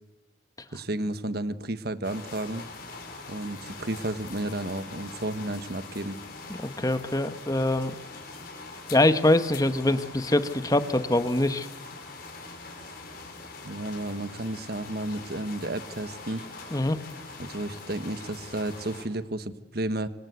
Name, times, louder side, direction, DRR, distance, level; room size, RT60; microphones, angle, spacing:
voice 1, 0.7-2.6 3.3-6.2 13.6-16.4 17.4-20.1, right 1 dB, 55° right, 12 dB, 1.4 m, -32 dB
sound 1, 2.0-19.0, left 3 dB, 50° left, 5.7 m, -43 dB
voice 2, 6.6-7.9 8.9-11.7 16.7-17.0, left 1 dB, 20° left, 10 dB, 1.1 m, -24 dB
27.5 x 25.5 x 8.2 m, 1.1 s
head